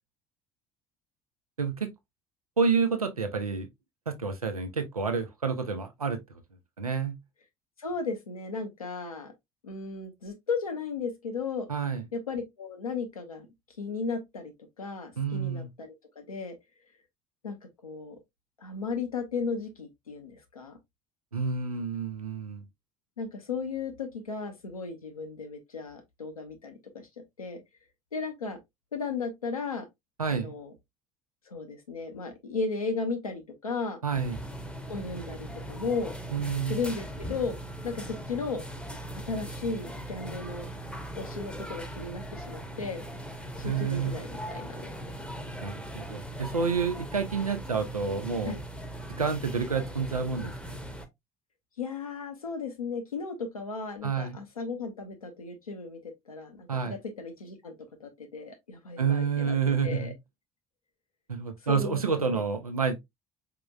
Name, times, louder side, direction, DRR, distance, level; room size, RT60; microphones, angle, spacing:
voice 1, 1.6-1.9 2.6-3.7 4.1-6.2 6.8-7.2 11.7-12.0 15.2-15.7 21.3-22.6 30.2-30.5 34.0-34.4 36.3-36.8 43.6-44.2 45.6-48.5 49.2-50.8 54.0-54.4 56.7-57.0 59.0-60.1 61.3-63.0, right 5 dB, 90° right, 0.6 m, -29 dB
voice 2, 7.8-9.3 9.6-11.7 12.1-13.5 13.8-14.5 14.8-16.6 17.4-17.5 17.8-18.2 18.6-20.8 23.2-27.1 27.4-27.6 28.1-28.6 28.9-29.9 30.3-30.7 31.5-34.0 34.9-36.1 36.7-37.6 37.8-38.6 39.3-40.7 41.1-43.0 43.6-44.9 48.4-48.6 51.8-57.7 58.0-59.6 59.8-60.1 61.6-62.4, left 4 dB, 85° left, 0.8 m, -35 dB
sound 1, 34.1-51.1, right 1 dB, 5° left, 0.8 m, -40 dB
4.9 x 2.9 x 2.3 m
figure-of-eight pair, 55°, 18 cm